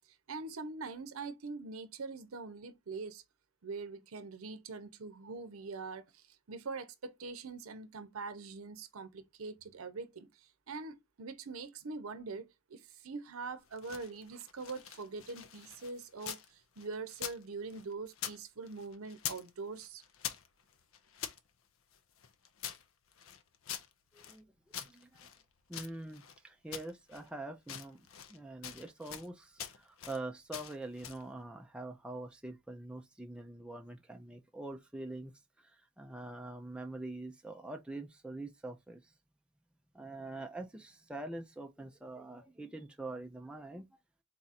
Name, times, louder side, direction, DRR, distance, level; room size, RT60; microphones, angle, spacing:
voice 1, 0.1-3.2 3.6-20.0, right 4 dB, 75° right, 0.7 m, -43 dB
sound 1, 13.6-16.5 16.8-18.4 18.7-19.5 19.8-21.4 21.9-24.4 24.7-26.4 26.7-27.3 27.6-28.4 28.6-29.3 29.6-30.2 30.5-31.3, left 9 dB, 70° left, 0.6 m, -45 dB
voice 2, 24.1-24.5 24.9-25.2 25.7-35.3 35.6-39.1 39.9-43.9, right 2 dB, 5° right, 0.3 m, -44 dB
4.0 x 2.5 x 4.1 m
head